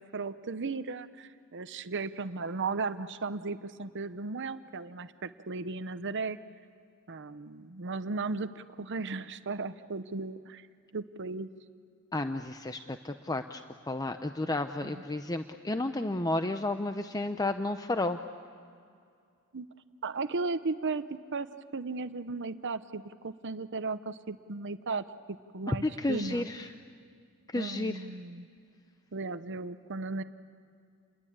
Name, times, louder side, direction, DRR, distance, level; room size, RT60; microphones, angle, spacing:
voice 1, 0.0-6.4 7.1-10.7 10.9-11.5 14.8-15.0 19.5-19.7 20.0-26.5 27.6-28.5 29.1-30.2, right 3 dB, 55° right, 12 dB, 0.9 m, -36 dB
voice 2, 12.1-18.2 25.7-26.7 27.5-28.1, left 2 dB, 15° left, 8 dB, 0.7 m, -32 dB
29.5 x 22.0 x 8.8 m, 2.3 s
head